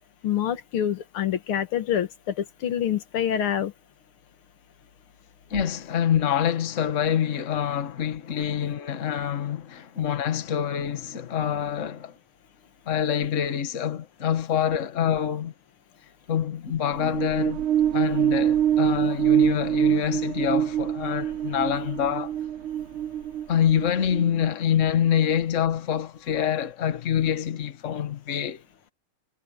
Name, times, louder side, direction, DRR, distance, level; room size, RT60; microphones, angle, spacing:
voice 1, 0.2-3.7, left 9 dB, 85° left, 2.3 m, -26 dB
voice 2, 5.5-12.2 12.8-15.5 16.3-17.6 17.9-22.4 23.5-28.6, left 9 dB, 40° left, 1.6 m, -26 dB
sound 1, 16.8-24.5, right 10 dB, 75° right, 1.7 m, -25 dB
omnidirectional pair, 2.3 m